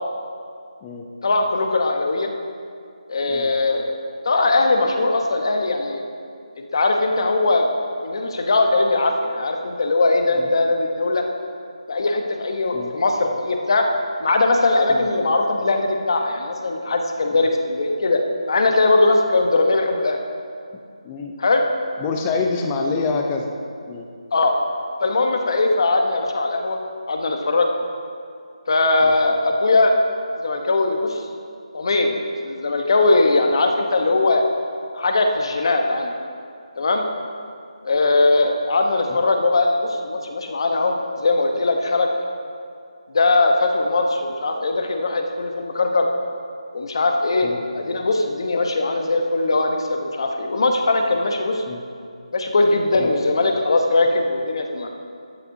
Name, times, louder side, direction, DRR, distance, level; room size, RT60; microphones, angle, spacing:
voice 1, 1.2-2.3 3.1-4.0 4.2-6.0 6.6-7.7 8.0-11.2 11.9-13.9 14.2-18.2 18.5-20.2 21.4-21.7 24.3-24.6 25.0-26.8 27.1-27.7 28.7-30.0 30.4-31.2 31.7-34.4 34.9-36.1 36.8-37.1 37.8-42.1 43.1-46.1 46.7-47.5 47.7-51.6 52.3-54.9, left 2 dB, 45° left, 3 dB, 1.0 m, -20 dB
voice 2, 22.0-23.5 23.9-24.1 29.0-29.1 47.4-47.6 51.7-51.8 52.9-53.1, left 4 dB, 10° left, 2 dB, 0.5 m, -26 dB
12.5 x 9.3 x 2.7 m, 2.3 s
figure-of-eight pair, 170°, 4 cm